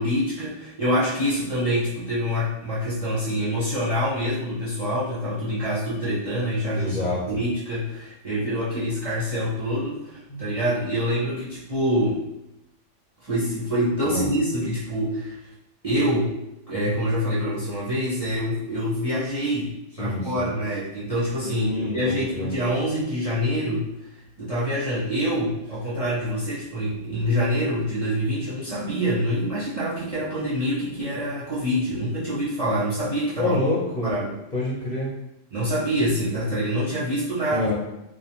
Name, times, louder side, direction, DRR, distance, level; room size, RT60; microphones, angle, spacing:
voice 1, 0.0-12.2 13.2-15.3 15.8-16.3 16.7-23.9 24.4-33.6 34.0-34.3 35.5-37.7, equal, 45° right, -10 dB, 0.5 m, -26 dB
voice 2, 6.7-7.3 10.3-10.5 14.0-14.3 20.0-20.5 21.4-22.5 33.4-34.2 34.5-35.1 37.5-37.7, left 2 dB, 50° left, -7 dB, 0.6 m, -27 dB
2.4 x 2.1 x 2.8 m, 0.88 s
omnidirectional pair, 1.3 m